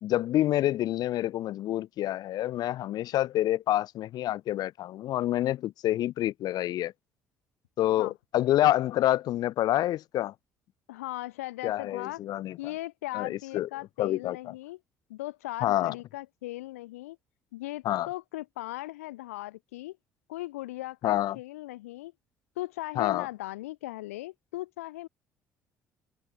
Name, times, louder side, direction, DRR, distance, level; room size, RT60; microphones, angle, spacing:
voice 1, 0.0-6.9 7.8-10.3 11.6-12.6 13.1-13.7 14.0-14.5 15.6-15.9 17.8-18.1 21.0-21.4 22.9-23.3, left 14 dB, 60° left, 1.5 m, -27 dB
voice 2, 10.9-12.2 12.6-14.8 15.1-17.2 17.5-20.0 20.3-22.1 22.6-25.1, left 17 dB, 75° left, 0.9 m, -38 dB
figure-of-eight pair, 50°, 8 cm